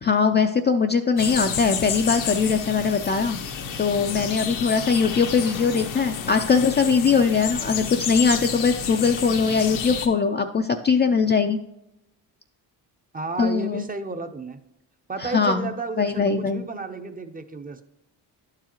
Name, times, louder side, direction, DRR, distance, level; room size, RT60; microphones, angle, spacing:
voice 1, 0.0-3.4 3.8-11.6 13.4-13.8 15.2-15.7 16.0-16.6, left 5 dB, 25° left, 5 dB, 0.4 m, -21 dB
sound 1, 1.2-10.1, left 7 dB, 85° left, 1.1 m, -30 dB
voice 2, 13.1-14.6 15.1-17.8, right 3 dB, 20° right, 8 dB, 0.6 m, -32 dB
11.5 x 4.8 x 3.0 m, 0.86 s
supercardioid pair, 80°, 45 cm